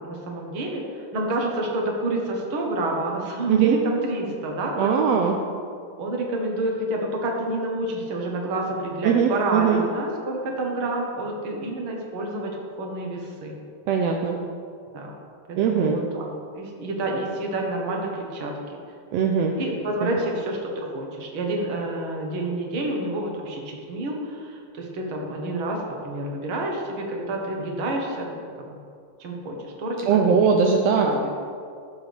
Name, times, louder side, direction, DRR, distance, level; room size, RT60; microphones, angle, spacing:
voice 1, 0.0-5.3 6.0-13.5 14.9-15.1 15.5-16.3 16.5-18.8 19.6-28.4 28.7-28.8 29.2-30.4 31.0-31.3, right 1 dB, 50° right, 0 dB, 1.9 m, -29 dB
voice 2, 4.8-5.4 9.0-9.8 13.9-14.4 15.6-16.0 19.1-19.6 20.0-20.1 30.1-31.1, right 6 dB, 75° right, 1 dB, 1.5 m, -20 dB
16.5 x 7.2 x 3.5 m, 2.3 s
omnidirectional pair, 3.6 m